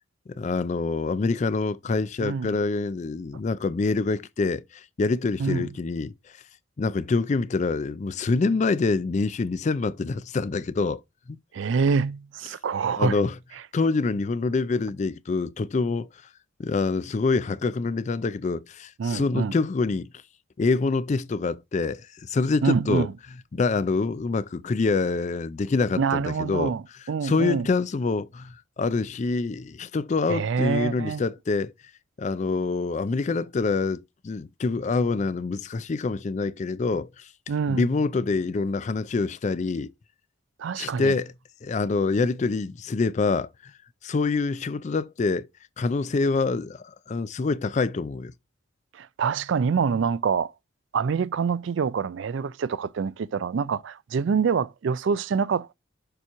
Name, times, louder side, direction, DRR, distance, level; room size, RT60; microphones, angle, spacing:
voice 1, 0.4-6.1 6.8-11.0 11.3-11.4 13.0-13.3 13.7-16.1 16.6-20.1 20.6-23.1 23.5-26.7 27.2-31.7 32.2-37.3 37.7-39.9 40.8-41.3 41.6-43.7 44.0-45.5 45.8-48.3, left 3 dB, 35° left, 0.3 m, -26 dB
voice 2, 11.5-13.2 19.0-19.6 22.6-23.1 26.0-27.7 30.3-31.2 37.5-37.9 40.6-41.2 48.9-50.5 50.9-55.7, right 5 dB, 60° right, 0.3 m, -26 dB
6.8 x 2.9 x 4.7 m
head